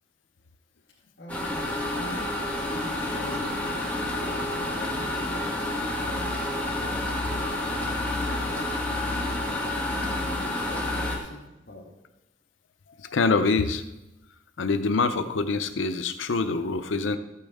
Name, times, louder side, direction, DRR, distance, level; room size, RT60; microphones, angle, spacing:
voice 1, 0.9-3.5 4.1-6.9 7.7-9.4 9.7-11.4 11.7-11.9, left 1 dB, 60° left, -4 dB, 1.8 m, -44 dB
sound 1, 1.3-11.2, left 1 dB, 10° left, 1.8 m, -29 dB
voice 2, 13.0-13.8 14.6-17.2, left 4 dB, 80° left, 10 dB, 0.6 m, -25 dB
13.5 x 8.7 x 3.6 m, 0.98 s
head